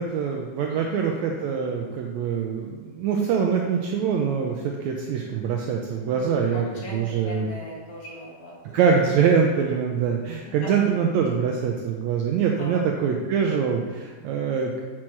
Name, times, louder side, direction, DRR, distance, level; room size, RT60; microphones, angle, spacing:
voice 1, 0.0-6.7 6.9-7.5 8.7-14.8, right 6 dB, 85° right, 1 dB, 1.6 m, -24 dB
voice 2, 0.7-1.0 6.1-8.8 10.4-10.7 12.6-12.8, equal, 65° left, -4 dB, 3.0 m, -40 dB
7.3 x 6.2 x 4.5 m, 1.5 s
omnidirectional pair, 3.8 m